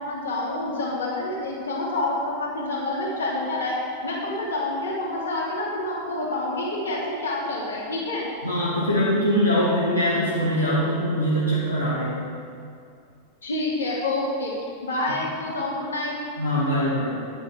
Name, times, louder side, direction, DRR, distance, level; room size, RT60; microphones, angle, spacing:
voice 1, 0.0-3.7 4.0-8.3 13.4-14.5 14.8-16.2, left 2 dB, 70° left, -4 dB, 2.8 m, -28 dB
voice 2, 8.4-12.3 16.4-17.2, equal, 90° left, -9 dB, 1.9 m, -23 dB
10.5 x 9.1 x 4.4 m, 2.4 s
figure-of-eight pair, 90°, 0 cm